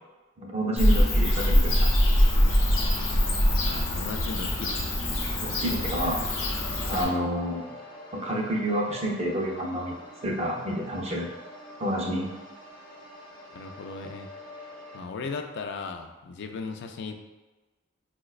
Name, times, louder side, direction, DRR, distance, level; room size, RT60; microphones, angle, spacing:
voice 1, 0.4-1.9 5.4-6.2 6.9-7.7 8.1-9.9 10.2-11.3 11.8-12.3, equal, 35° right, -2 dB, 0.5 m, -29 dB
Bird / Cricket, 0.8-7.0, left 1 dB, 80° left, 0.8 m, -23 dB
voice 2, 3.6-4.9 13.5-14.3 14.9-17.2, left 4 dB, 60° left, 5 dB, 0.3 m, -37 dB
sound 1, 6.4-15.0, left 1 dB, 20° left, 0.7 m, -46 dB
4.7 x 2.1 x 2.3 m, 1.2 s
head